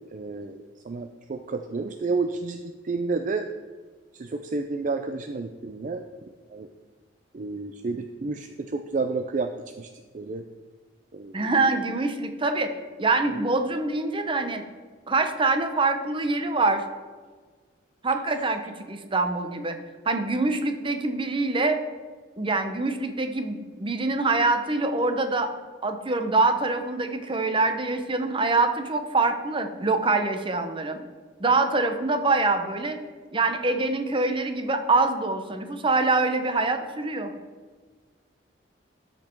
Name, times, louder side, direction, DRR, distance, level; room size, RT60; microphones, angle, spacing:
voice 1, 0.1-0.6 0.8-3.5 4.1-6.0 6.5-6.7 7.3-9.5 9.8-9.9 10.1-10.4 11.1-11.5 13.3-13.4, right 3 dB, 45° right, 7 dB, 0.4 m, -30 dB
voice 2, 11.3-12.7 13.0-14.6 15.1-16.8 18.0-19.8 20.0-21.8 22.4-25.5 25.8-31.0 31.4-33.0 33.3-37.3, right 3 dB, 30° right, 7 dB, 0.8 m, -24 dB
13.0 x 5.4 x 4.5 m, 1.4 s
head